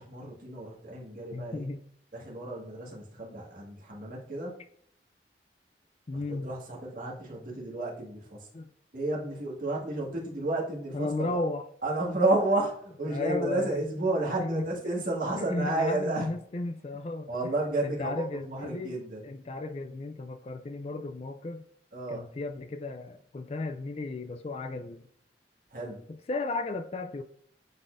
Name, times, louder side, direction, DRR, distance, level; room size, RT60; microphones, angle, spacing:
voice 1, 0.0-1.6 2.1-4.6 6.1-8.5 8.9-11.4 11.8-16.3 17.3-19.3 21.9-22.3 25.7-26.1, right 2 dB, 50° right, 1.9 m, -31 dB
voice 2, 1.3-1.8 6.1-6.5 8.5-8.7 10.9-11.7 13.1-13.9 14.4-15.0 15.4-17.3 17.8-21.6 22.1-25.1 26.1-27.2, left 2 dB, 35° left, 0.4 m, -34 dB
9.0 x 4.1 x 2.6 m
head